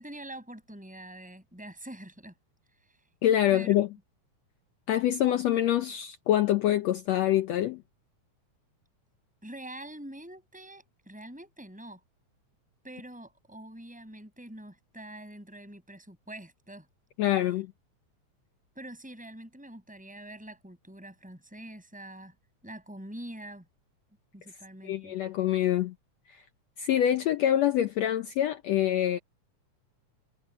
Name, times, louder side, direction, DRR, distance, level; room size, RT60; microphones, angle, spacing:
voice 1, 0.0-2.3 2.8-3.0 3.5-3.7 9.4-12.0 12.8-16.9 17.2-17.5 18.7-22.3 22.6-23.6 24.3-25.2, right 1 dB, ahead, 7.5 m, -45 dB
voice 2, 3.2-3.9 4.9-7.8 17.2-17.7 24.8-25.9 26.3-26.4 26.8-29.2, left 12 dB, 70° left, 1.8 m, -25 dB
omnidirectional pair, 3.6 m